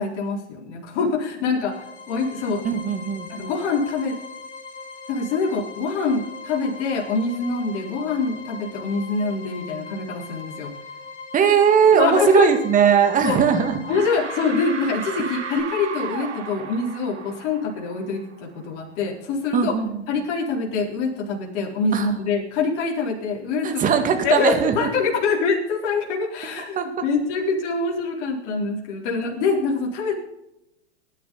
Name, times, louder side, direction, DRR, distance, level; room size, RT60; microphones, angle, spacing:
voice 1, 0.0-1.8 2.1-2.7 3.3-4.1 5.1-10.7 11.9-12.5 13.2-13.4 13.9-19.8 20.1-23.8 24.2-26.8 27.0-30.1, left 4 dB, 45° left, -1 dB, 4.2 m, -24 dB
sound 1, 1.4-15.6, left 4 dB, 20° left, 4.1 m, -40 dB
voice 2, 2.6-3.3 11.3-13.8 15.2-15.3 19.5-20.0 21.9-22.1 23.6-25.0 26.8-26.9, right 7 dB, 25° right, 6 dB, 2.1 m, -19 dB
sound 2, 13.8-18.4, right 6 dB, 75° right, 2.2 m, -35 dB
19.5 x 10.5 x 4.1 m, 0.87 s
hypercardioid pair, 115°, 35 cm